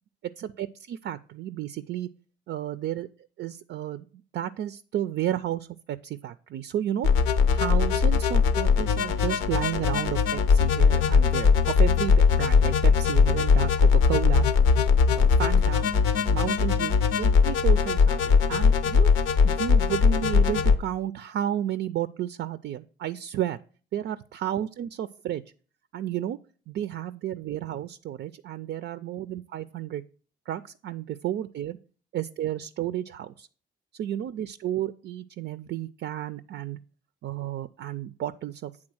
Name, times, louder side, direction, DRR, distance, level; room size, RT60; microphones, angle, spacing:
voice 1, 0.2-2.1 2.5-3.1 3.4-4.1 4.3-7.1 7.5-14.5 15.1-15.9 16.3-19.1 19.4-23.6 23.9-25.4 25.9-26.4 26.7-30.0 30.5-31.8 32.1-33.5 33.9-36.8 37.2-38.7, right 11 dB, 65° right, 12 dB, 0.4 m, -32 dB
sound 1, 7.0-20.8, left 5 dB, 90° left, 0.7 m, -20 dB
8.7 x 3.7 x 6.2 m, 0.41 s
cardioid pair, 90°, 20 cm